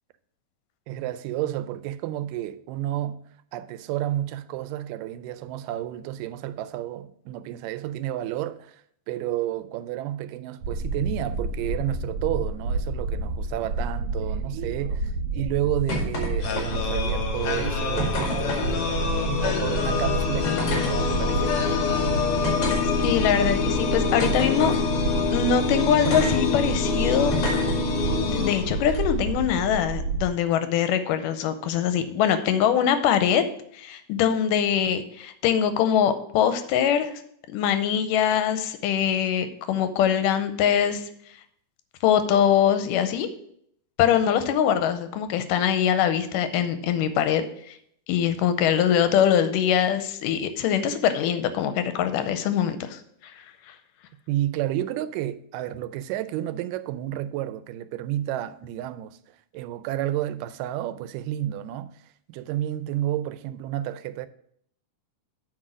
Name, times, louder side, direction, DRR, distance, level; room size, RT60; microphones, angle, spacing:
voice 1, 0.9-3.2 3.5-21.6 54.3-62.0 62.3-64.3, right 13 dB, 85° right, 2.1 m, -31 dB
sound 1, 10.6-30.3, right 2 dB, 65° right, 1.6 m, -30 dB
sound 2, 15.9-16.3 16.6-17.0 18.0-18.7 19.7-19.9 20.4-20.9 21.6-21.7 22.4-23.3 24.2-24.8 26.1-26.4 27.3-27.8 28.9-29.0, left 1 dB, 50° left, 3.0 m, -30 dB
sound 3, 16.4-29.3, left 5 dB, 70° left, 1.3 m, -26 dB
voice 2, 23.0-24.7 25.3-27.3 28.2-33.5 33.7-37.1 37.5-41.1 42.0-43.3 44.0-47.8 48.1-53.3 53.7-53.8, left 9 dB, 90° left, 2.2 m, -23 dB
8.8 x 4.3 x 6.1 m
omnidirectional pair, 3.8 m